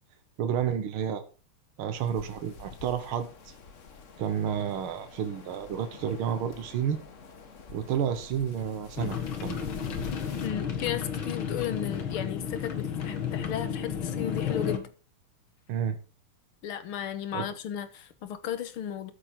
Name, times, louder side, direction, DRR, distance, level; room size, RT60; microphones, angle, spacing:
voice 1, 0.4-1.2 1.8-3.5 4.2-7.0 7.7-9.7 15.7-16.0 17.3-17.5, right 8 dB, 80° right, 1.9 m, -30 dB
sound 1, 2.0-10.5, left 5 dB, 40° left, 1.4 m, -46 dB
sound 2, 9.0-14.8, left 8 dB, 70° left, 2.4 m, -32 dB
voice 2, 10.4-14.9 16.6-19.1, left 9 dB, 85° left, 2.1 m, -34 dB
13.5 x 7.5 x 4.4 m
omnidirectional pair, 2.3 m